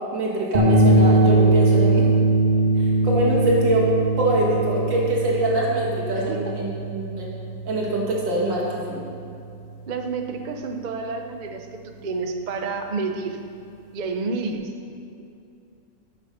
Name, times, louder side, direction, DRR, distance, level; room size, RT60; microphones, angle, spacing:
voice 1, 0.1-2.0 2.8-3.9 4.2-7.3 7.7-9.1, right 1 dB, 85° right, -3 dB, 2.7 m, -24 dB
sound 1, 0.5-9.0, right 2 dB, 30° right, 1.3 m, -21 dB
voice 2, 6.1-6.5 9.9-13.4 13.9-14.6, right 4 dB, 50° right, 4 dB, 0.5 m, -29 dB
11.5 x 7.1 x 5.7 m, 2.6 s
omnidirectional pair, 1.9 m